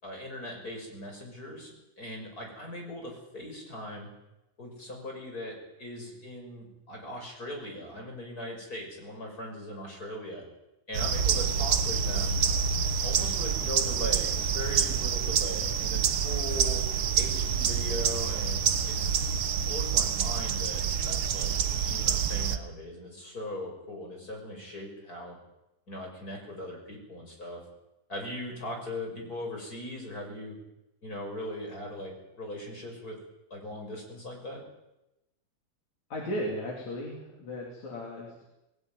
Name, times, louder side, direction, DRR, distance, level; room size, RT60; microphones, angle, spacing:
voice 1, 0.0-4.1 4.6-10.4 10.9-12.4 13.0-16.8 17.2-19.1 19.6-21.6 21.9-25.4 25.9-27.6 28.1-30.6 31.0-33.2 33.5-34.6, left 1 dB, 25° left, 1 dB, 6.6 m, -39 dB
sound 1, 10.9-22.6, right 7 dB, 65° right, 1.3 m, -27 dB
voice 2, 36.1-38.5, equal, 55° left, -2 dB, 4.6 m, -36 dB
21.5 x 16.5 x 9.5 m, 0.93 s
omnidirectional pair, 3.9 m